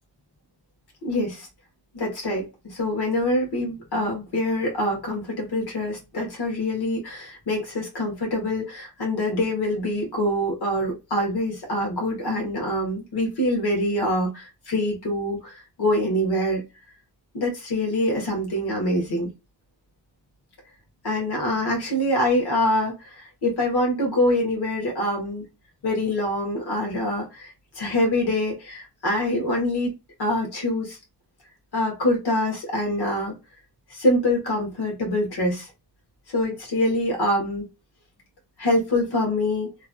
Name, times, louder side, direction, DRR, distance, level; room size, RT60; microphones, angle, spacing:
voice 1, 1.0-1.5 1.9-16.6 17.3-19.3 21.0-25.4 25.8-29.9 30.2-31.0 31.7-33.3 33.9-35.7 36.3-37.6 38.6-39.7, left 1 dB, 65° left, 1.4 m, -25 dB
3.0 x 2.5 x 2.3 m
wide cardioid pair, 145°, 42 cm